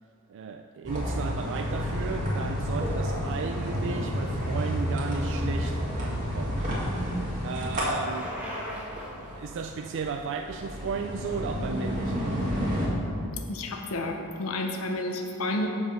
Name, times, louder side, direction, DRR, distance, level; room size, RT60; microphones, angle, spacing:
voice 1, 0.3-6.7 7.4-8.3 9.4-12.3, right 5 dB, 55° right, 5 dB, 0.3 m, -35 dB
sound 1, 0.8-12.9, equal, 35° right, 2.1 m, -30 dB
Bicycle, 5.8-11.8, equal, 5° right, 1.2 m, -43 dB
voice 2, 13.5-15.7, left 2 dB, 65° left, 3 dB, 0.8 m, -31 dB
8.0 x 5.0 x 5.9 m, 2.6 s
head